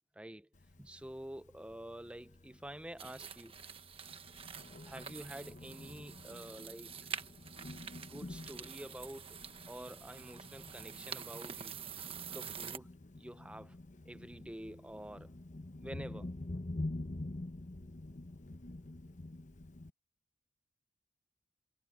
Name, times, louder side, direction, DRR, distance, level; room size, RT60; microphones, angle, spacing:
voice 1, 0.1-0.5 0.8-3.6 4.6-6.9 7.9-11.7 12.3-13.8 14.1-15.3 15.8-16.3, right 1 dB, 5° right, 0.6 m, -48 dB
Thunder, 0.5-19.9, left 2 dB, 45° left, 1.0 m, -48 dB
sound 1, 3.0-12.8, right 7 dB, 30° right, 1.2 m, -47 dB
head